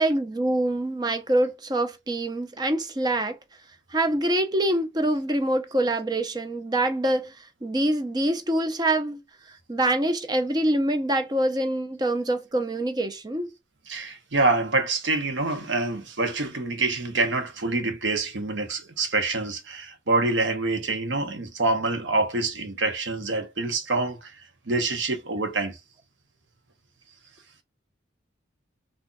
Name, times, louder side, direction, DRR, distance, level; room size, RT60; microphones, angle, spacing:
voice 1, 0.0-3.4 3.9-9.2 9.7-13.5, right 1 dB, 20° right, 0.5 m, -25 dB
voice 2, 13.9-25.8, right 3 dB, 75° right, 0.8 m, -26 dB
3.8 x 2.5 x 2.2 m
head